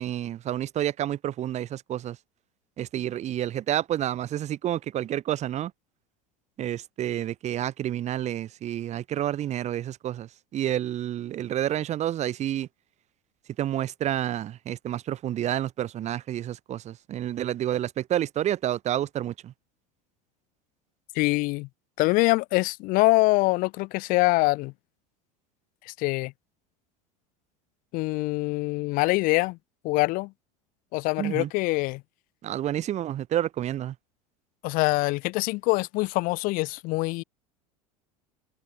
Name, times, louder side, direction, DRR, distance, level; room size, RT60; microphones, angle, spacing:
voice 1, 0.0-2.2 2.8-5.7 6.6-12.7 13.6-19.5 31.2-31.5 32.4-33.9, right 12 dB, 35° right, 1.1 m, -29 dB
voice 2, 21.1-21.7 22.0-24.7 25.8-26.3 27.9-29.6 29.8-30.3 30.9-32.0 34.6-37.2, left 23 dB, 50° left, 0.5 m, -24 dB
hypercardioid pair, 80°, 19 cm